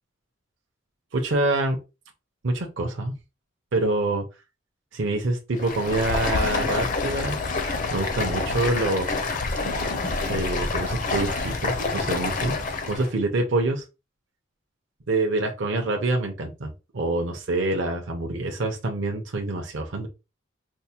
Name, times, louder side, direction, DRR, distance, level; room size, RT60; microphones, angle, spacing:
voice 1, 1.1-1.8 2.4-3.1 3.7-4.2 4.9-7.4 7.6-9.1 10.2-12.6 12.9-13.8 15.1-20.1, right 2 dB, 60° right, 2 dB, 0.6 m, -26 dB
Stream, 5.5-13.1, left 3 dB, 40° left, 0.5 m, -27 dB
4.4 x 2.1 x 2.8 m, 0.28 s
head